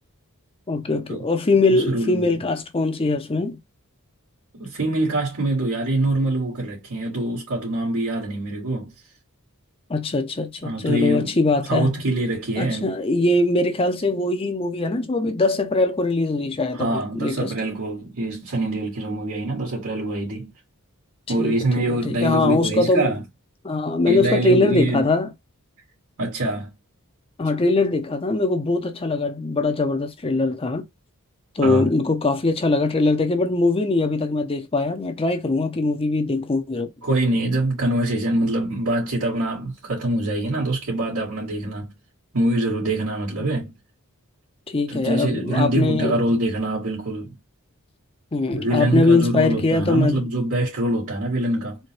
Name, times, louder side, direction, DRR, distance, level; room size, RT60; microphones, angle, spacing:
voice 1, 0.7-3.6 9.9-12.0 12.6-17.5 21.4-23.1 23.6-25.3 27.4-30.9 31.6-36.9 43.4-43.5 44.7-46.2 48.3-50.2, left 2 dB, 25° left, 0.6 m, -22 dB
voice 2, 1.7-2.4 4.5-8.9 10.6-11.4 11.7-13.0 16.7-20.5 21.3-23.2 24.1-25.0 26.2-26.7 31.6-31.9 37.0-41.9 42.3-43.7 44.9-47.3 48.5-51.8, right 1 dB, 85° right, 2.2 m, -24 dB
4.3 x 2.2 x 3.1 m
head